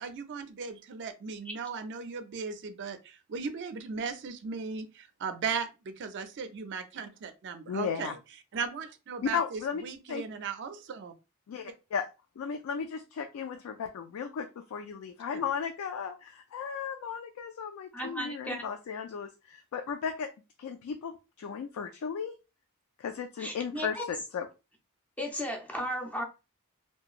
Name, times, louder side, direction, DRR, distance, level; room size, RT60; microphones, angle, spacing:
voice 1, 0.0-8.2 8.5-11.1 15.3-15.4, right 5 dB, 55° right, 0.4 m, -37 dB
voice 2, 7.7-8.1 9.2-9.8 10.1-10.3 11.5-12.1 12.4-20.3 20.6-22.4 23.0-24.5, left 6 dB, 70° left, 0.3 m, -35 dB
voice 3, 17.9-18.6 23.4-24.0 25.2-26.2, equal, 5° left, 0.6 m, -35 dB
2.9 x 2.2 x 2.4 m
head